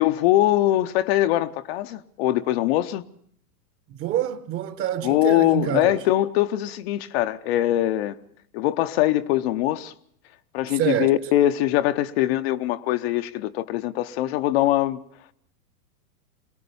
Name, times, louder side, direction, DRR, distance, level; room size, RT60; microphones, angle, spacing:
voice 1, 0.0-3.0 5.0-8.2 8.5-9.9 10.5-15.0, left 14 dB, 45° left, 0.8 m, -22 dB
voice 2, 3.9-6.0 10.7-11.1, right 11 dB, 30° right, 1.3 m, -27 dB
23.0 x 17.5 x 7.0 m
hypercardioid pair, 140°, 44 cm